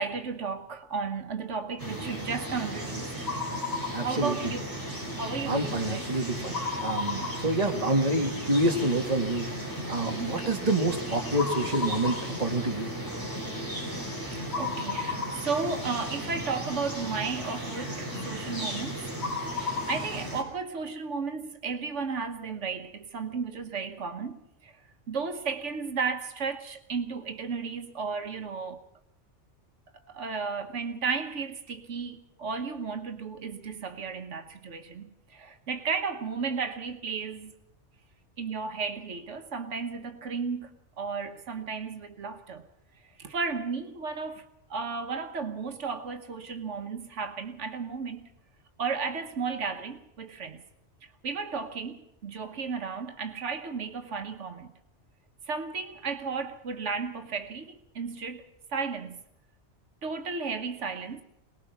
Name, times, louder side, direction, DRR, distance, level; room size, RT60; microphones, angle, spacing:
voice 1, 0.0-3.3 4.0-4.6 5.1-6.0 7.4-7.5 10.0-10.5 14.3-19.1 19.9-24.8 25.1-28.8 30.1-37.5 38.4-40.7 41.0-42.6 43.0-48.3 48.8-50.6 51.0-54.7 55.5-59.2 60.0-61.2, right 5 dB, 85° right, 1.5 m, -34 dB
sound 1, 1.8-20.4, left 1 dB, 15° left, 4.9 m, -34 dB
voice 2, 3.9-4.5 5.5-12.9, right 1 dB, 30° right, 2.1 m, -28 dB
23.0 x 19.5 x 5.9 m
omnidirectional pair, 1.2 m